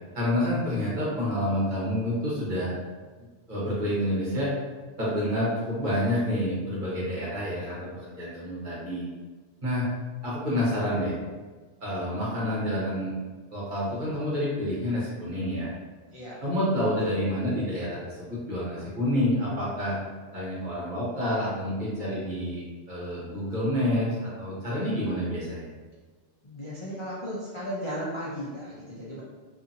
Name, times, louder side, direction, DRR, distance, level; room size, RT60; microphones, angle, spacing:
voice 1, 0.1-2.7 3.5-4.5 5.0-9.0 9.6-9.9 10.2-11.2 11.8-13.1 13.5-15.7 16.4-20.0 20.3-25.7, left 1 dB, 45° right, -7 dB, 1.0 m, -28 dB
voice 2, 16.1-16.4 26.4-29.2, equal, 45° left, -8 dB, 0.4 m, -35 dB
2.7 x 2.6 x 2.6 m, 1.4 s
omnidirectional pair, 1.2 m